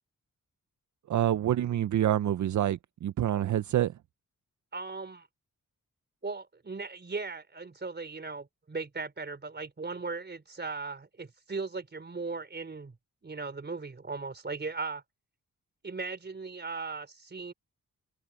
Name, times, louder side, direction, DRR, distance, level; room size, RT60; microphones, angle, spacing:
voice 1, 1.1-4.0, right 12 dB, 65° right, 0.5 m, -27 dB
voice 2, 4.7-5.3 6.2-13.0 13.2-15.0 15.8-17.5, right 4 dB, 35° right, 4.1 m, -38 dB
wide cardioid pair, 120°, 32 cm